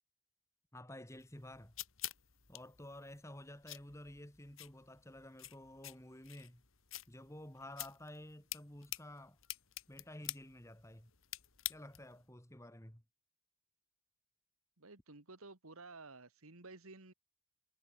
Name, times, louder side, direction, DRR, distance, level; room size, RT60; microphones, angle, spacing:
voice 1, 0.7-1.7 2.5-6.6 7.1-9.4 9.9-11.1 11.7-13.0, left 1 dB, 15° left, 2.6 m, -52 dB
sound 1, 1.2-12.2, left 15 dB, 70° left, 2.3 m, -49 dB
voice 2, 14.8-17.1, right 3 dB, 85° right, 2.3 m, -53 dB
head